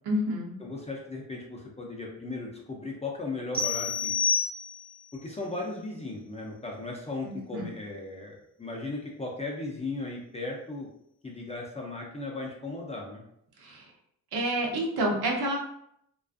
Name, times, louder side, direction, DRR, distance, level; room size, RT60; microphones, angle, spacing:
voice 1, 0.0-0.5 7.2-7.8 13.6-13.9 14.3-15.6, right 1 dB, 85° right, -1 dB, 0.7 m, -29 dB
voice 2, 0.6-4.1 5.1-10.9 11.2-13.2, left 2 dB, 20° left, -1 dB, 0.4 m, -36 dB
sound 1, 3.5-5.1, left 5 dB, 25° right, 0.6 m, -28 dB
2.4 x 2.3 x 2.4 m, 0.73 s
wide cardioid pair, 125°, 37 cm